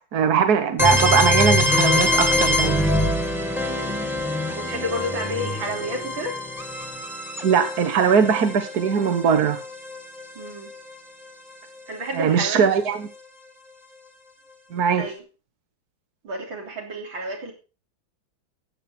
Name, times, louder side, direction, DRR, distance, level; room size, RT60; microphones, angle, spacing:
voice 1, 0.1-2.8 7.4-9.6 12.2-13.1 14.7-15.0, right 6 dB, 55° right, 8 dB, 1.7 m, -20 dB
sound 1, 0.8-10.5, left 1 dB, ahead, 1.4 m, -24 dB
voice 2, 3.7-4.0 4.3-6.4 10.4-10.7 11.9-12.7 15.0-15.2 16.2-17.5, equal, 90° right, 1 dB, 4.1 m, -31 dB
14.0 x 9.1 x 4.4 m, 0.33 s
omnidirectional pair, 2.1 m